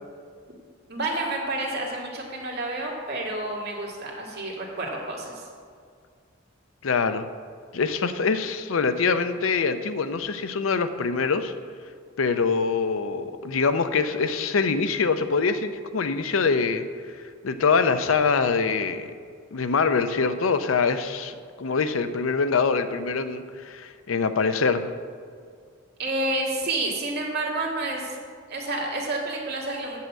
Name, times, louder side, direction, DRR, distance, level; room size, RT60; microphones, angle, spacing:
voice 1, 0.9-5.4 26.0-28.2 28.5-30.0, right 2 dB, 55° right, -2 dB, 1.9 m, -29 dB
voice 2, 6.8-7.3 7.7-11.5 12.2-16.9 17.4-19.1 19.5-24.9, left 5 dB, 90° left, 10 dB, 0.6 m, -24 dB
7.6 x 5.6 x 7.3 m, 2.1 s
head